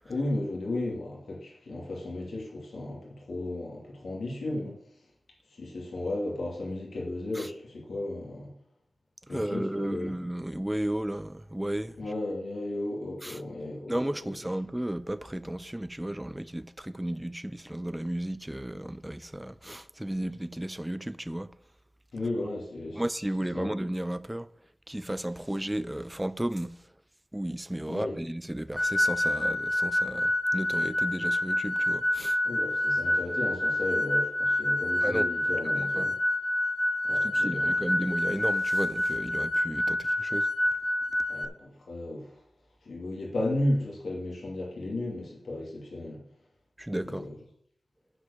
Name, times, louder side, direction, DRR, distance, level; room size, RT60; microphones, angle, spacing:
voice 1, 0.1-4.8 5.5-8.5 9.3-10.1 12.0-14.0 14.2-14.3 22.1-23.0 23.5-23.7 27.9-28.2 32.4-36.1 37.0-37.7 41.3-42.4 42.8-46.2 47.0-47.3, left 1 dB, 80° left, 2.7 m, -34 dB
voice 2, 9.3-11.9 13.2-13.4 13.9-21.5 22.9-24.5 24.9-26.8 27.3-32.4 35.0-35.3 35.8-36.1 37.2-40.5 46.8-47.3, right 1 dB, 15° right, 0.5 m, -33 dB
sound 1, 28.8-41.5, left 1 dB, 20° left, 1.3 m, -27 dB
9.6 x 4.9 x 7.1 m
cardioid pair, 45°, 0 cm